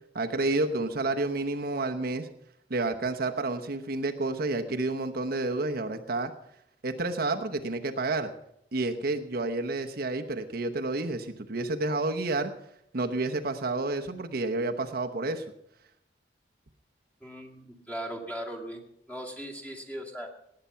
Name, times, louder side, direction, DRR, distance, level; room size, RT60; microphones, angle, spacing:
voice 1, 0.1-2.3 2.7-6.3 6.8-8.3 8.7-12.5 12.9-15.4, right 2 dB, 55° right, 5 dB, 0.9 m, -30 dB
voice 2, 17.2-18.8 19.1-20.3, equal, 10° left, 2 dB, 2.1 m, -38 dB
18.5 x 8.9 x 5.6 m, 0.77 s
head